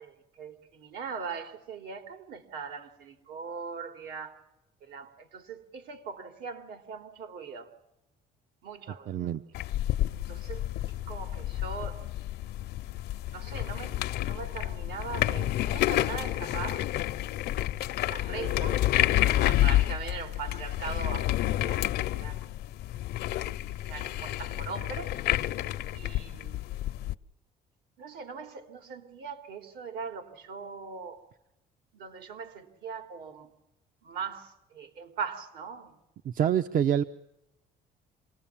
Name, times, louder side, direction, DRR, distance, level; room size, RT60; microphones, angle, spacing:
voice 1, 0.0-4.4 4.8-7.7 8.6-9.3 10.1-10.6 11.1-12.0 13.3-16.9 18.1-18.8 19.4-21.8 22.1-22.4 23.8-25.1 25.9-26.6 28.0-31.2 31.9-33.5 34.0-36.0, right 5 dB, 75° right, 3.2 m, -40 dB
voice 2, 9.1-9.4 36.2-37.0, right 9 dB, 55° right, 0.8 m, -26 dB
sound 1, 9.5-27.2, left 14 dB, 70° left, 0.8 m, -29 dB
26.5 x 20.0 x 7.3 m
cardioid pair, 110°, 17 cm